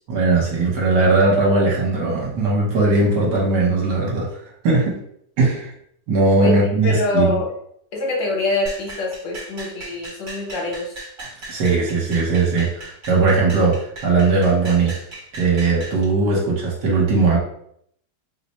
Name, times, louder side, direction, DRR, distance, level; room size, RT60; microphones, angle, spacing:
voice 1, 0.1-5.0 5.4-5.7 6.1-7.4 11.5-14.9 15.4-17.4, right 3 dB, 65° right, -3 dB, 1.3 m, -19 dB
voice 2, 6.8-7.5 7.9-10.9, left 2 dB, 70° left, -1 dB, 1.5 m, -24 dB
sound 1, 8.7-16.0, right 2 dB, 45° right, 0.9 m, -37 dB
3.3 x 2.0 x 4.0 m, 0.68 s
omnidirectional pair, 2.1 m